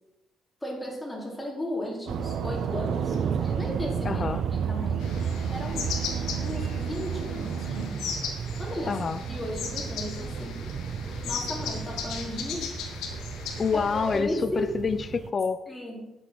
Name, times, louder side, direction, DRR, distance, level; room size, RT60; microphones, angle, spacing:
voice 1, 0.6-4.2 4.5-5.0 5.5-5.9 6.4-8.1 8.6-9.0 9.3-10.6 11.2-12.9 14.1-14.7 15.7-16.1, left 1 dB, 10° left, -3 dB, 4.6 m, -35 dB
sound 1, 2.1-15.3, right 6 dB, 55° right, 0.6 m, -34 dB
sound 2, 2.1-7.9, right 9 dB, 85° right, 1.0 m, -34 dB
voice 2, 4.0-4.4 8.9-9.2 13.6-15.6, left 5 dB, 40° left, 11 dB, 0.7 m, -27 dB
sound 3, 5.0-14.2, left 6 dB, 90° left, 1.9 m, -37 dB
9.7 x 7.9 x 6.3 m, 0.94 s
cardioid pair, 90°, 0 cm